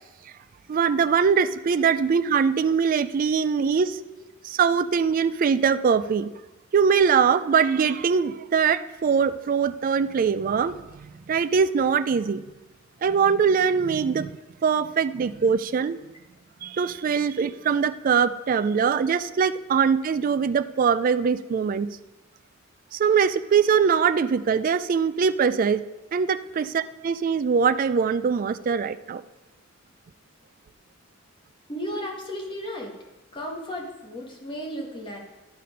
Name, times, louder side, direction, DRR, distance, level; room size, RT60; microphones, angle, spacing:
voice 1, 0.7-4.0 4.4-6.3 6.7-12.4 13.0-14.3 14.6-16.0 16.6-21.9 22.9-25.8 26.1-29.2, right 6 dB, 40° right, 13 dB, 0.3 m, -22 dB
voice 2, 31.7-32.9 33.3-35.2, equal, 25° left, -1 dB, 1.4 m, -34 dB
11.0 x 4.2 x 5.2 m, 1.1 s
head